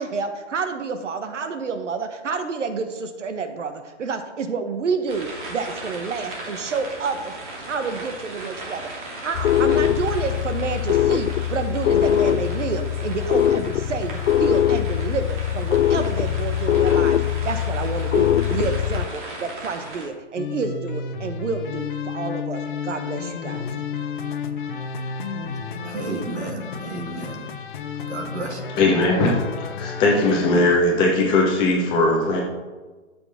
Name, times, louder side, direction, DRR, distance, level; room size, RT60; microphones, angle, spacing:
voice 1, 0.0-7.4 7.7-23.7, right 5 dB, 80° right, 7 dB, 1.2 m, -29 dB
sound 1, 5.1-20.1, right 2 dB, 45° right, 2.8 m, -37 dB
sound 2, 9.3-19.1, left 10 dB, 90° left, 0.5 m, -22 dB
sound 3, 20.4-30.8, left 6 dB, 45° left, 0.9 m, -32 dB
voice 2, 25.8-27.5 28.1-28.6, right 3 dB, 65° right, 1 dB, 2.4 m, -31 dB
voice 3, 28.8-29.4 29.8-32.4, left 2 dB, 15° left, -2 dB, 1.1 m, -19 dB
13.0 x 6.8 x 3.6 m, 1.3 s
hypercardioid pair, 165°, 36 cm